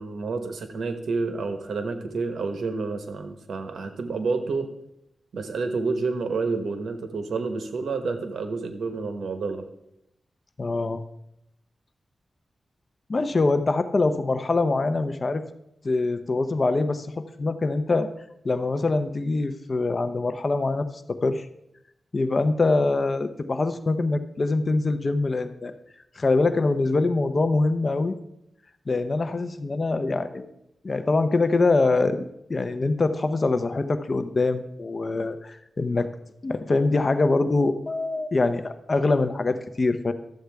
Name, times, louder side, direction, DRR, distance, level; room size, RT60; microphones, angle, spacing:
voice 1, 0.0-4.7 5.3-9.7, right 4 dB, 80° right, 7 dB, 1.1 m, -29 dB
voice 2, 10.6-11.0 13.1-15.4 15.8-18.1 18.4-21.5 22.1-25.7 26.2-28.1 28.9-30.5 30.8-32.2 32.5-36.1 36.4-40.1, left 3 dB, 45° left, 10 dB, 0.7 m, -24 dB
12.5 x 7.9 x 3.5 m, 0.81 s
cardioid pair, 75°, 0 cm